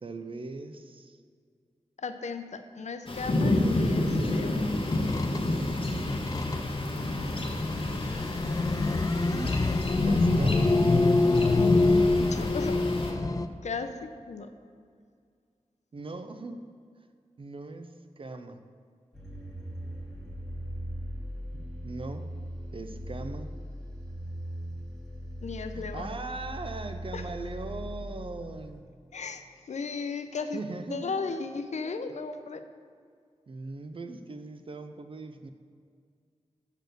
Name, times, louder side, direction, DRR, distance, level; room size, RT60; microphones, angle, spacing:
voice 1, 0.0-1.2 9.0-9.6 9.9-10.8 15.9-16.6 17.4-17.9 18.2-18.6 21.5-22.2 22.7-23.5 25.7-28.8 30.5-31.2 33.5-35.5, right 3 dB, 50° right, 8 dB, 0.4 m, -39 dB
voice 2, 2.0-4.8 12.2-12.8 13.1-13.2 13.6-14.5 25.4-26.1 27.1-27.2 29.1-30.6 30.9-32.6, left 4 dB, 80° left, 9 dB, 0.5 m, -36 dB
sound 1, 3.1-13.1, left 1 dB, 50° left, 1.0 m, -30 dB
sound 2, 4.8-13.5, left 3 dB, 30° left, 0.3 m, -26 dB
sound 3, 19.1-28.8, equal, 5° left, 1.8 m, -39 dB
8.1 x 4.2 x 6.6 m, 2.2 s
wide cardioid pair, 80°, 12 cm